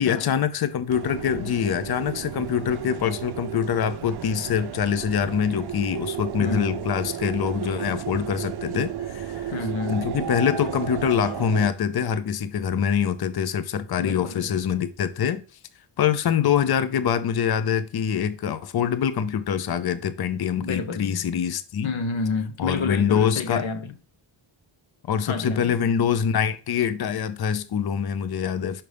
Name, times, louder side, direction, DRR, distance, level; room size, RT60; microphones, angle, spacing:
voice 1, 0.0-9.6 9.9-15.4 16.0-21.9 22.6-23.7 25.1-28.8, left 8 dB, 50° left, 0.6 m, -24 dB
sound 1, 0.9-11.7, right 9 dB, 55° right, 0.5 m, -33 dB
voice 2, 6.4-6.8 9.5-10.1 14.0-14.6 20.6-21.2 21.8-23.9 25.3-25.8, left 4 dB, 70° left, 0.9 m, -29 dB
5.8 x 5.2 x 3.3 m
wide cardioid pair, 145°, 49 cm